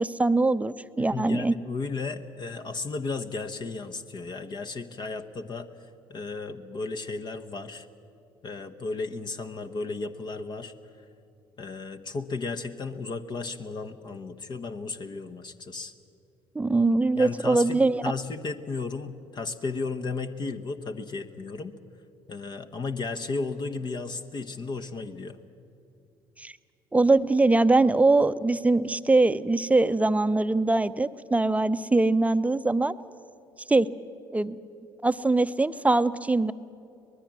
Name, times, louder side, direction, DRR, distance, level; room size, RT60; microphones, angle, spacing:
voice 1, 0.0-1.5 16.5-18.0 26.4-26.5 26.9-32.9 33.7-33.9 34.3-34.6 35.0-36.5, right 2 dB, 10° right, 13 dB, 0.8 m, -22 dB
voice 2, 1.0-7.9 8.4-10.7 11.6-15.9 17.2-21.7 22.3-25.4, left 3 dB, 40° left, 8 dB, 1.2 m, -34 dB
25.0 x 20.0 x 7.5 m, 2.7 s
figure-of-eight pair, 55°, 12 cm